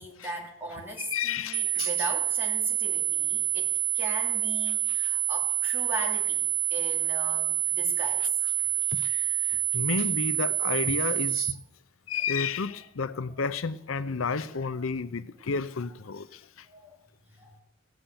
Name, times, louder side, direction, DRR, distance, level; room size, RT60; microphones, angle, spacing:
voice 1, 0.0-8.3 14.7-14.9 16.7-17.0 17.4-17.6, right 1 dB, 10° right, 2.7 m, -38 dB
voice 2, 1.0-1.9 8.9-11.6 12.1-16.4, left 5 dB, 90° left, 0.6 m, -31 dB
sound 1, 1.5-11.5, right 12 dB, 75° right, 0.9 m, -27 dB
16.5 x 7.1 x 8.9 m
head